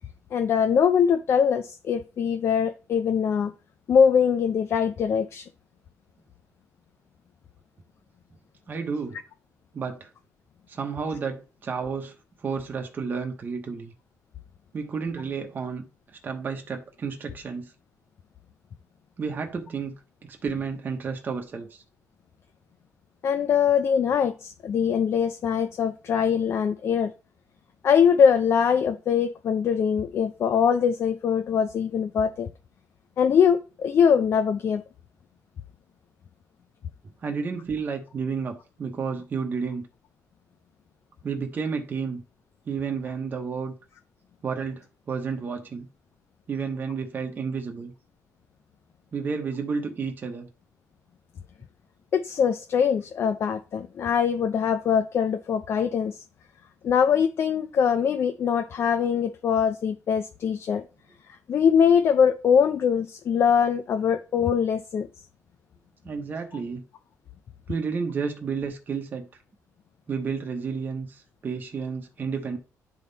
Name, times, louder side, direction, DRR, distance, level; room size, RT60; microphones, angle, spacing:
voice 1, 0.3-3.5 3.9-5.5 23.2-27.1 27.8-32.5 33.2-34.8 52.1-56.2 56.8-60.8 61.5-65.1, left 7 dB, 45° left, 0.5 m, -22 dB
voice 2, 8.7-9.2 9.7-10.1 10.7-13.9 14.7-17.7 19.2-19.9 20.2-21.8 37.2-39.9 41.2-42.2 42.7-43.7 44.4-45.9 46.5-47.9 49.1-50.5 66.0-66.8 67.7-69.3 70.1-72.6, right 5 dB, 30° right, 1.0 m, -31 dB
10.5 x 3.7 x 4.0 m
cardioid pair, 170°, 6 cm